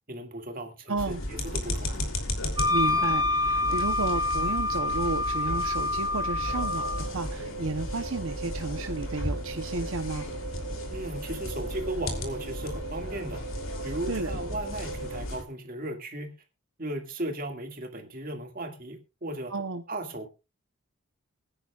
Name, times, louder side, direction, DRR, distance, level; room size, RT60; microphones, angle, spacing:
voice 1, 0.1-2.0 10.9-13.4 13.8-16.3 16.8-19.5 19.9-20.3, right 1 dB, 40° right, 2.2 m, -36 dB
voice 2, 0.9-1.2 2.7-10.2 14.1-14.3 19.5-19.8, right 3 dB, 65° right, 0.9 m, -32 dB
sound 1, 1.0-15.4, left 1 dB, 65° left, 3.2 m, -35 dB
Wind instrument woodwind instrument, 2.6-7.1, left 2 dB, 20° right, 1.6 m, -27 dB
sound 2, 6.5-15.2, right 4 dB, 85° right, 1.3 m, -40 dB
23.0 x 10.0 x 2.4 m
head